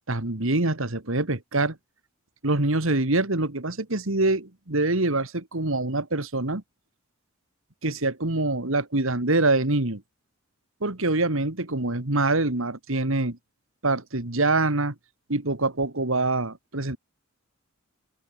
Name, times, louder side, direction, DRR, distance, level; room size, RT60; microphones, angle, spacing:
voice 1, 0.1-1.8 2.4-6.6 7.8-10.0 10.8-13.4 13.8-14.9 15.3-17.0, right 2 dB, 65° right, 2.3 m, -25 dB
open air
head